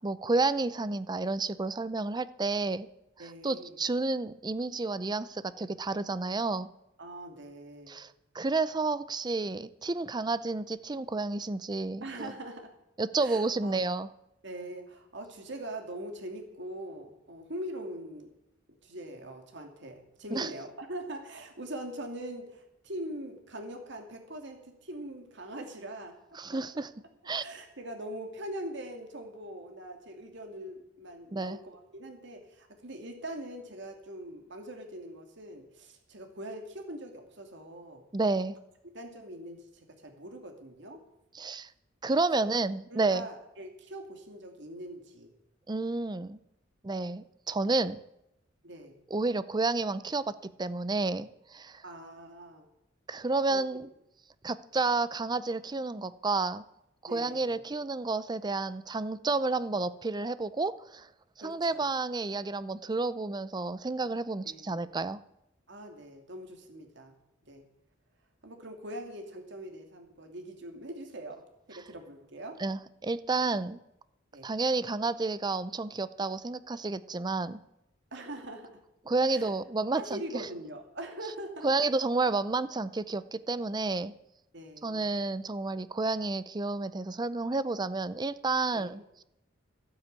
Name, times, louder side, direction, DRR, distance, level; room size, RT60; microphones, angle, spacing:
voice 1, 0.0-2.9 3.4-6.7 7.9-12.3 13.0-14.1 20.3-20.5 26.4-26.9 27.3-27.4 31.3-31.6 38.1-38.5 41.3-41.7 42.0-43.3 45.7-46.4 46.8-48.0 49.1-50.2 50.6-51.8 53.1-53.9 54.4-56.6 57.0-61.1 61.4-65.2 72.6-73.8 74.4-77.6 79.1-80.2 81.6-84.1 84.8-89.0, right 3 dB, 20° right, 15 dB, 0.5 m, -30 dB
voice 2, 3.2-3.8 7.0-8.0 12.0-12.7 13.2-13.8 14.4-18.3 18.8-26.2 26.5-26.8 27.4-38.0 38.8-41.0 42.3-42.4 42.9-45.3 48.6-49.0 51.8-52.7 53.5-53.6 57.0-57.6 61.4-61.9 64.4-65.0 65.7-67.1 67.5-67.6 68.4-72.6 74.3-74.5 78.1-78.7 79.3-79.5 79.9-81.7 84.5-85.1 88.7-89.0, right 1 dB, 65° right, 4 dB, 2.7 m, -42 dB
12.5 x 9.7 x 8.2 m, 0.84 s
head